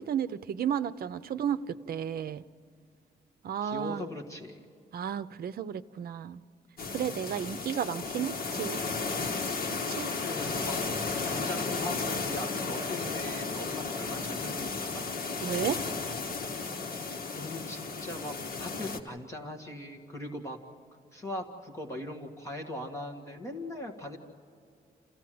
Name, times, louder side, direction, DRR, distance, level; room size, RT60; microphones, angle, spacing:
voice 1, 0.0-2.4 3.4-4.0 4.9-6.4 6.9-8.8 9.7-10.1 15.4-15.8, right 9 dB, 70° right, 12 dB, 0.6 m, -33 dB
voice 2, 3.6-4.6 10.2-10.8 11.2-15.1 17.3-20.6 21.1-24.2, left 1 dB, 20° left, 2 dB, 1.9 m, -40 dB
sound 1, 6.8-19.0, left 4 dB, 70° left, 1.6 m, -34 dB
28.0 x 15.5 x 7.8 m, 2.4 s
wide cardioid pair, 175°, 16 cm